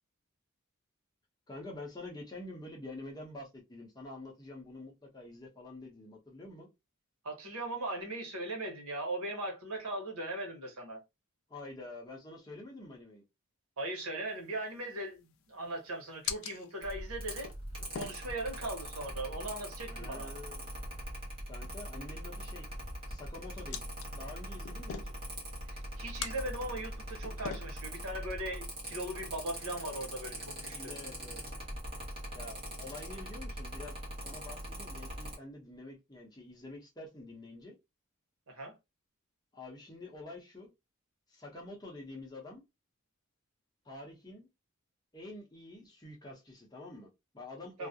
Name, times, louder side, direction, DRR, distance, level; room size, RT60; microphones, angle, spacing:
voice 1, 1.5-6.7 11.5-13.2 19.9-20.7 21.5-22.7 23.1-25.1 30.7-31.4 32.3-34.0 34.2-37.7 39.5-40.7 41.3-42.6 43.8-44.5 45.1-47.9, left 2 dB, 20° left, 0.6 m, -47 dB
voice 2, 7.2-11.0 13.8-17.5 17.9-20.3 25.7-30.9 38.5-38.7 47.8-47.9, right 1 dB, 90° right, 0.9 m, -39 dB
sound 1, 14.3-29.6, left 8 dB, 70° left, 0.3 m, -48 dB
Mechanical fan, 16.8-35.4, right 1 dB, 25° right, 0.8 m, -42 dB
2.3 x 2.0 x 2.6 m
head